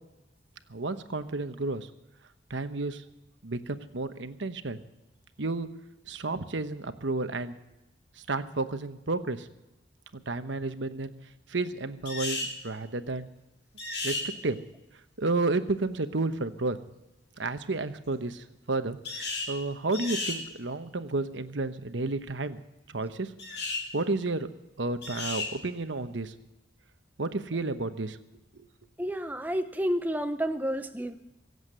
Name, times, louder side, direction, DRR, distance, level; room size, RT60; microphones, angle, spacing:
voice 1, 0.7-1.9 2.5-3.0 3.4-4.8 5.4-5.7 6.1-7.5 8.2-9.5 10.1-11.1 11.5-13.3 14.0-14.6 15.2-16.8 17.4-22.6 22.9-23.3 23.9-24.5 24.8-26.3 27.2-28.2 28.6-28.7, right 3 dB, 80° right, 10 dB, 1.0 m, -31 dB
sound 1, 12.0-12.5 13.8-14.3 19.0-19.5 19.9-20.4 23.4-23.8 25.0-25.5, left 3 dB, 70° left, 5.7 m, -33 dB
voice 2, 29.0-31.1, equal, 10° right, 8 dB, 0.8 m, -30 dB
24.0 x 8.1 x 6.7 m, 0.96 s
head